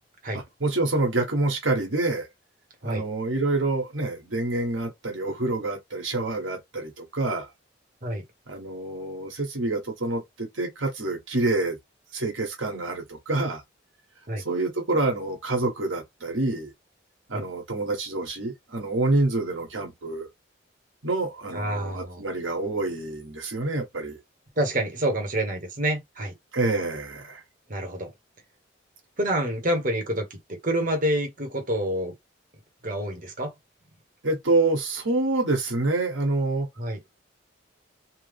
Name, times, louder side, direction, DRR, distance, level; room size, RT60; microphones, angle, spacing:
voice 1, 0.3-2.3 2.8-7.5 8.5-11.8 12.1-13.6 14.4-16.7 17.3-20.3 21.0-24.2 26.5-27.4 34.2-36.7, right 2 dB, 85° right, 1.5 m, -27 dB
voice 2, 21.5-22.2 24.6-26.3 27.7-28.1 29.2-30.4 30.6-32.1 32.8-33.5 36.8-37.0, right 1 dB, 45° right, 1.1 m, -27 dB
3.4 x 2.2 x 3.4 m
head